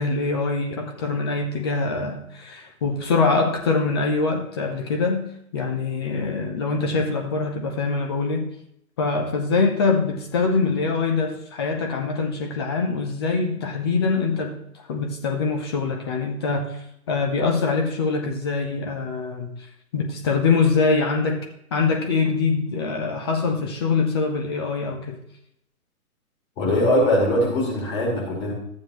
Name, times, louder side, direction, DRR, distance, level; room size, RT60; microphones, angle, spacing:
voice 1, 0.0-8.5 9.0-14.6 14.9-19.6 19.9-25.2, left 4 dB, 20° left, 3 dB, 0.6 m, -24 dB
voice 2, 26.6-28.5, left 1 dB, 35° left, -4 dB, 4.4 m, -21 dB
13.5 x 7.4 x 3.0 m, 0.75 s
hypercardioid pair, 140°, 44 cm